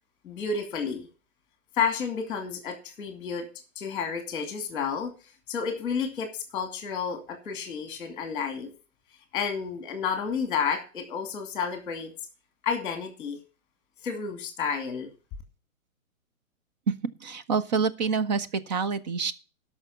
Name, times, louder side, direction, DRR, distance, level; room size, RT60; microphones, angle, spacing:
voice 1, 0.2-1.1 1.8-3.5 3.8-5.1 5.5-8.7 9.3-12.1 12.6-13.4 14.0-15.1, left 6 dB, 10° left, 6 dB, 2.2 m, -31 dB
voice 2, 17.2-19.3, right 5 dB, 30° right, 11 dB, 0.8 m, -27 dB
12.5 x 5.8 x 6.9 m, 0.34 s
hypercardioid pair, 155°, 42 cm